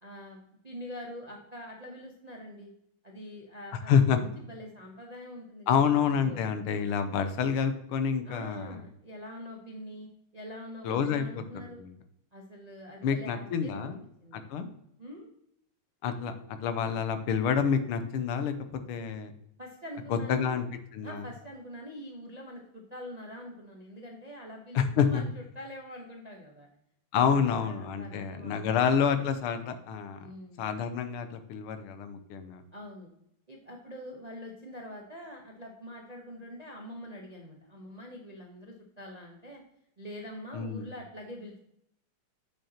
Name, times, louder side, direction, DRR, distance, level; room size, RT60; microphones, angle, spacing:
voice 1, 0.0-2.7 3.0-6.6 8.2-11.8 12.3-13.9 14.2-14.5 15.0-15.3 19.6-20.6 21.0-26.7 27.3-28.9 30.2-30.6 32.7-33.1 33.5-39.6 40.0-41.6, equal, 45° right, 1 dB, 0.5 m, -44 dB
voice 2, 3.9-4.2 5.7-8.8 10.8-11.4 11.8-11.9 13.0-14.0 14.3-14.7 16.0-19.3 20.1-20.6 20.9-21.2 24.7-25.2 27.1-30.3 30.6-32.6 40.5-40.9, left 7 dB, 90° left, 9 dB, 1.7 m, -28 dB
8.2 x 6.5 x 2.9 m, 0.76 s
omnidirectional pair, 2.4 m